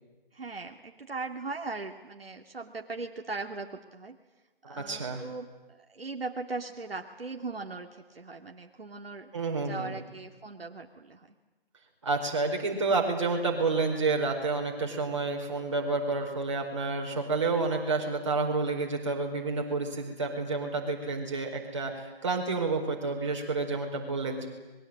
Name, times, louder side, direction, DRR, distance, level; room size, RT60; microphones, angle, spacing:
voice 1, 0.3-4.2 4.7-9.3 9.6-11.3, right 3 dB, 75° right, 3 dB, 2.7 m, -39 dB
voice 2, 4.8-5.2 9.3-9.9 12.0-24.5, right 3 dB, 30° right, 1 dB, 4.5 m, -29 dB
26.5 x 22.0 x 8.8 m, 1.2 s
hypercardioid pair, 175°, 30 cm